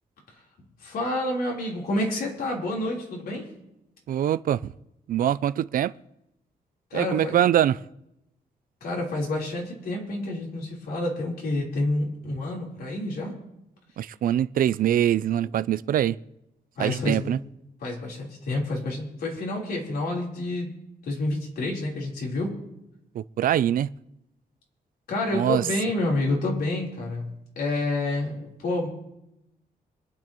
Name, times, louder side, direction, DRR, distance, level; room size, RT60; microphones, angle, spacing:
voice 1, 0.8-3.5 6.9-7.4 8.8-13.4 16.8-17.2 17.8-20.7 21.0-22.5 25.1-28.9, left 2 dB, 80° left, 3.9 m, -28 dB
voice 2, 4.1-4.7 5.1-5.9 6.9-7.8 14.0-16.2 16.8-17.4 23.2-23.9 25.3-25.7, right 11 dB, 65° right, 0.4 m, -23 dB
26.0 x 9.7 x 3.1 m
cardioid pair, 125°, 16 cm